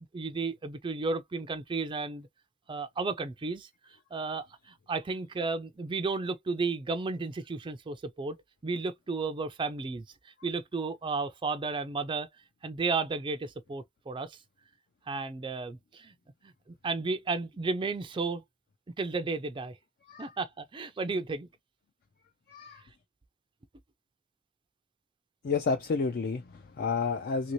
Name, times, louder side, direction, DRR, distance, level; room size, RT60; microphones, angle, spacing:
voice 1, 0.1-2.3 2.7-3.7 4.1-8.4 8.6-12.3 12.6-14.4 15.1-16.1 16.4-16.5 16.8-18.4 19.0-19.8 20.2-21.5, right 4 dB, 25° right, 0.4 m, -33 dB
voice 2, 22.5-22.8 25.4-27.5, left 4 dB, 45° left, 0.4 m, -30 dB
2.9 x 2.6 x 3.0 m
head